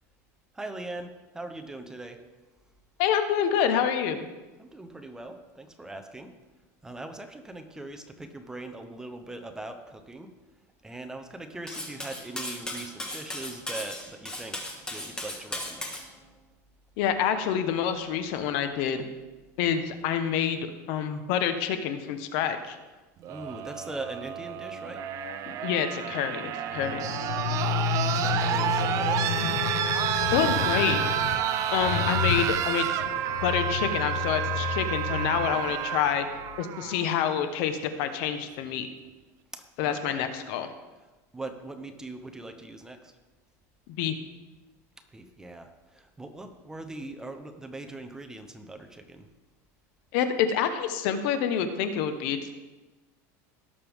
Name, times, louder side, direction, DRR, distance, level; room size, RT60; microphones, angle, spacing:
voice 1, 0.5-2.2 4.6-6.3 6.8-10.3 10.8-14.6 14.9-16.0 23.3-25.0 27.4-29.4 39.5-40.3 41.3-43.1 45.1-49.3, right 2 dB, 5° right, 5 dB, 0.8 m, -41 dB
voice 2, 3.0-4.3 17.0-19.0 19.6-20.6 20.9-22.8 25.5-27.0 30.3-31.0 31.7-32.9 33.4-36.3 36.6-38.9 39.8-40.7 44.0-44.1 50.1-52.5, left 8 dB, 60° left, 9 dB, 1.1 m, -27 dB
Cutlery silverware, 11.7-16.0, left 1 dB, 10° left, 1.6 m, -36 dB
sound 1, 23.2-37.2 38.4-38.5, right 10 dB, 40° right, 0.7 m, -30 dB
sound 2, 26.7-36.6, left 9 dB, 85° left, 0.7 m, -32 dB
17.5 x 6.7 x 3.6 m, 1.2 s
supercardioid pair, 145°, 9 cm